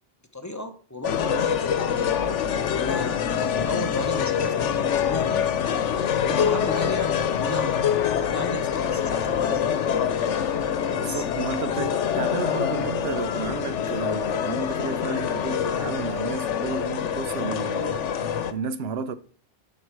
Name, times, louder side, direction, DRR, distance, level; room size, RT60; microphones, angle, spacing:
voice 1, 0.3-2.0 2.6-5.4 6.2-7.8 8.1-9.8 10.8-12.4, left 1 dB, 15° left, 0.8 m, -34 dB
sound 1, 1.0-18.5, left 8 dB, 90° left, 1.1 m, -25 dB
voice 2, 10.9-18.1 18.5-19.1, right 5 dB, 65° right, 0.9 m, -32 dB
11.0 x 5.1 x 4.6 m
omnidirectional pair, 1.2 m